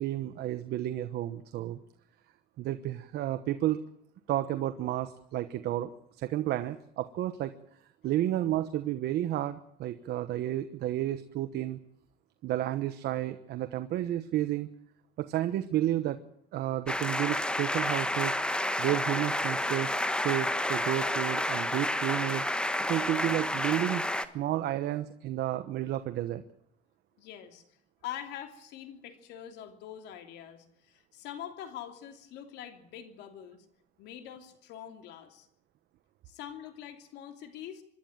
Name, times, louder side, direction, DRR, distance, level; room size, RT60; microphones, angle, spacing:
voice 1, 0.0-1.8 2.6-3.8 4.3-5.9 6.2-7.5 8.0-11.8 12.4-14.7 15.2-16.2 16.5-18.4 18.8-22.4 22.9-24.1 24.3-26.4, right 13 dB, 75° right, 10 dB, 1.2 m, -31 dB
sound 1, 16.9-24.3, left 1 dB, 5° left, 1.3 m, -30 dB
voice 2, 27.2-33.6 34.0-35.5 36.3-37.8, left 10 dB, 85° left, 7 dB, 3.0 m, -44 dB
25.5 x 11.5 x 9.0 m, 0.70 s
cardioid pair, 110°, 17 cm